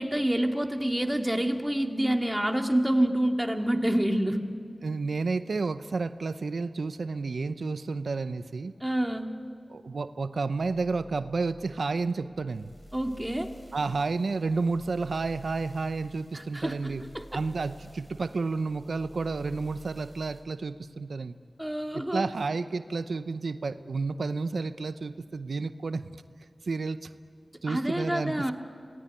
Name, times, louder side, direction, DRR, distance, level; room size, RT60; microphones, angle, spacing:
voice 1, 0.0-4.4 8.8-9.3 12.9-13.5 16.3-17.4 21.6-22.3 27.7-28.5, right 1 dB, 10° right, 4 dB, 2.2 m, -27 dB
voice 2, 4.8-8.7 9.7-12.7 13.7-17.0 17.3-21.4 21.9-26.1 26.6-27.1 27.6-28.5, right 4 dB, 90° right, 12 dB, 0.7 m, -31 dB
sound 1, 12.0-20.4, equal, 10° left, 6.5 m, -51 dB
26.5 x 18.5 x 9.8 m, 2.1 s
cardioid pair, 45°, 0 cm